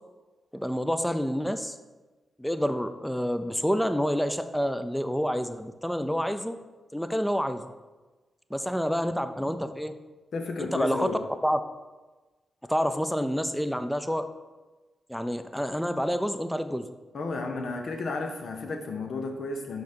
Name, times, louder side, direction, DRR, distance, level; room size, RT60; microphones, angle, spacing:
voice 1, 0.5-1.8 2.4-6.6 6.9-7.7 8.5-10.0 10.6-11.1 11.4-11.6 12.7-14.3 15.1-16.9, equal, 5° left, 9 dB, 0.5 m, -28 dB
voice 2, 10.3-11.2 17.1-19.8, left 3 dB, 70° left, 4 dB, 0.8 m, -32 dB
5.9 x 3.7 x 4.4 m, 1.2 s
supercardioid pair, 45°, 0 cm